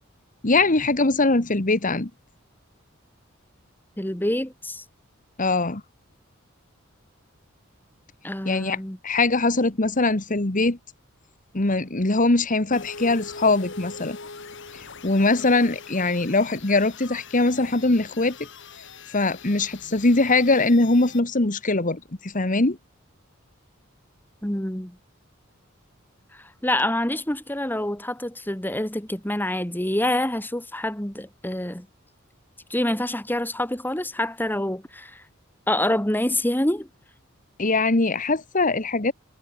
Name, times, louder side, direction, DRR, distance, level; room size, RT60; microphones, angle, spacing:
voice 1, 0.4-2.1 5.4-5.8 8.4-8.8 9.0-10.8 11.5-14.2 14.7-18.4 19.1-22.8 37.6-39.1, left 2 dB, 40° left, 1.6 m, -22 dB
voice 2, 4.0-4.8 8.2-9.0 24.4-25.0 26.4-31.9 32.7-35.2 35.7-36.9, left 1 dB, 10° left, 2.2 m, -26 dB
sound 1, 12.7-21.2, left 4 dB, 65° left, 4.0 m, -42 dB
head